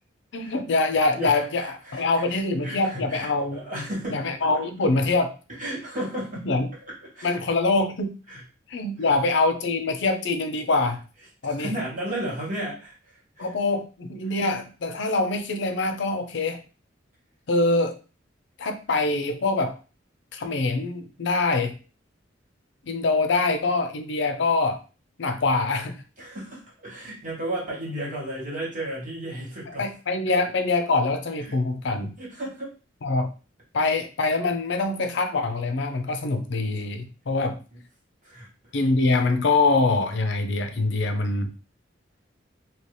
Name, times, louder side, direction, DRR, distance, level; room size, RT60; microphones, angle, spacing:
voice 1, 0.3-3.6 4.1-5.3 6.4-6.7 7.2-8.1 8.7-11.0 11.4-11.7 13.4-16.6 17.5-18.0 18.6-19.8 20.3-21.7 22.9-24.8 25.2-26.0 29.8-32.1 33.0-33.3 33.7-37.6 38.7-41.5, left 3 dB, 65° left, 8 dB, 0.5 m, -24 dB
voice 2, 1.1-4.2 5.6-6.5 6.9-7.3 8.3-8.4 9.0-9.2 11.4-13.5 26.2-29.9 31.5-31.6 32.2-32.7 38.2-38.5, right 1 dB, 45° right, -5 dB, 1.9 m, -34 dB
2.9 x 2.8 x 3.2 m, 0.34 s
head